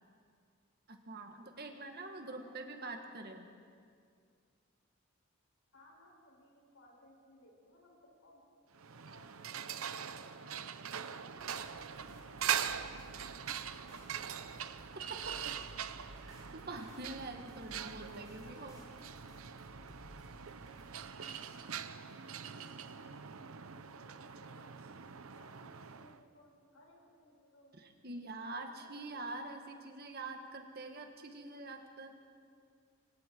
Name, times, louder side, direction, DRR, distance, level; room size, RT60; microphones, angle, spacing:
voice 1, 0.9-3.5 15.1-15.4 16.2-18.8 27.7-32.2, right 2 dB, 45° right, 4 dB, 1.8 m, -45 dB
voice 2, 1.5-1.9 2.2-3.0 5.7-8.4 8.9-9.8 10.2-10.7 11.0-14.3 18.3-19.1 21.1-24.9 25.3-27.9 28.4-29.3, left 1 dB, 70° left, -2 dB, 6.8 m, -63 dB
sound 1, 8.7-26.2, right 8 dB, 75° right, 0.8 m, -42 dB
sound 2, 11.4-21.0, equal, 15° left, 3.5 m, -57 dB
29.5 x 25.0 x 4.7 m, 2.2 s
head